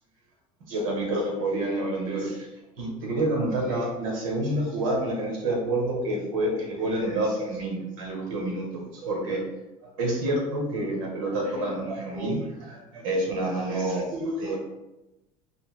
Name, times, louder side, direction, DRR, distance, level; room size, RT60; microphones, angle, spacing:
voice 1, 0.7-2.5 2.8-9.4 10.0-14.6, right 1 dB, 80° right, 0 dB, 1.1 m, -28 dB
5.4 x 2.1 x 2.4 m, 0.99 s
hypercardioid pair, 75°, 17 cm